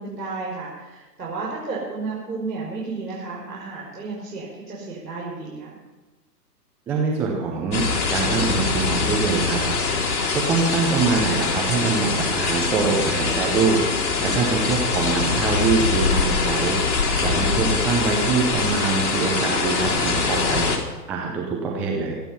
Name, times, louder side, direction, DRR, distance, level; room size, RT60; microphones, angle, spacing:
voice 1, 0.0-5.8, right 3 dB, 80° right, -4 dB, 5.8 m, -32 dB
voice 2, 6.9-10.0 10.3-20.7 21.1-22.2, right 4 dB, 5° right, -2 dB, 0.5 m, -24 dB
sound 1, 7.7-20.8, left 4 dB, 65° left, 4.1 m, -23 dB
25.0 x 9.2 x 5.7 m, 1.2 s
figure-of-eight pair, 130°, 49 cm